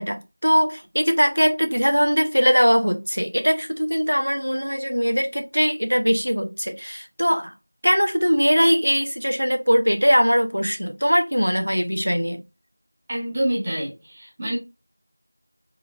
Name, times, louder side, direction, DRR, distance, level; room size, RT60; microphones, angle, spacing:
voice 1, 0.0-7.5 7.8-12.4, equal, 90° right, 1.0 m, -21 dB
voice 2, 13.1-14.6, right 1 dB, 5° right, 0.3 m, -27 dB
3.7 x 2.5 x 3.0 m
figure-of-eight pair, 180°, 0 cm